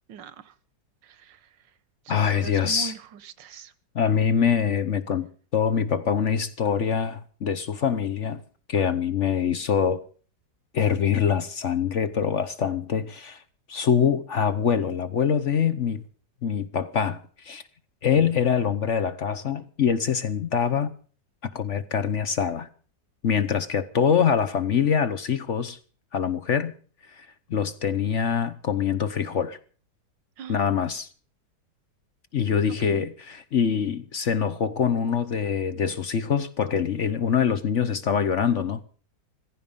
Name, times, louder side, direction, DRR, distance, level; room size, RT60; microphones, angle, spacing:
voice 1, 0.1-0.5 1.0-1.5 2.1-3.7 30.4-30.6 32.7-33.1, right 8 dB, 90° right, 1.7 m, -41 dB
voice 2, 2.1-2.9 3.9-8.4 8.7-10.0 10.7-13.4 13.7-16.0 16.4-17.6 18.0-20.9 21.4-22.7 23.2-25.8 26.1-26.7 27.1-29.6 30.5-31.1 32.3-38.8, left 7 dB, 50° left, 1.1 m, -24 dB
16.0 x 15.5 x 5.4 m
omnidirectional pair, 1.9 m